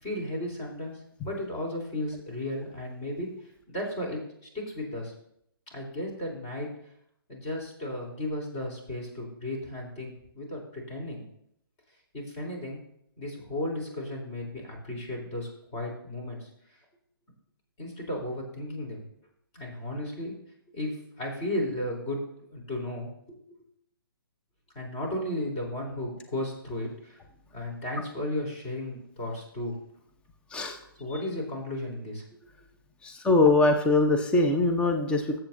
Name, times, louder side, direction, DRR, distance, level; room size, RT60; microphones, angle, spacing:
voice 1, 0.0-3.3 3.7-4.2 4.5-5.1 5.7-6.7 7.3-11.2 12.1-12.8 13.2-16.5 17.8-19.0 19.5-20.3 20.7-22.2 22.5-23.1 23.5-23.6 24.7-27.2 27.5-29.7 31.0-32.2, left 1 dB, 25° left, -2 dB, 3.7 m, -34 dB
voice 2, 33.0-35.4, left 2 dB, 10° left, 4 dB, 0.8 m, -22 dB
18.5 x 7.8 x 2.7 m, 0.73 s
figure-of-eight pair, 135°, 12 cm